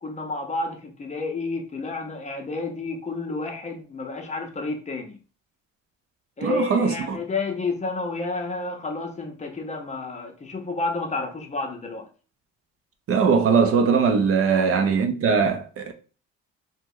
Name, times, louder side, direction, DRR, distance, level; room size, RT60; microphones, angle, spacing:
voice 1, 0.0-5.2 6.4-12.1 14.5-14.7, left 3 dB, 25° left, 0.6 m, -30 dB
voice 2, 6.4-7.2 13.1-15.9, right 5 dB, 50° right, 0.5 m, -20 dB
2.9 x 2.1 x 3.6 m
cardioid pair, 105°, 29 cm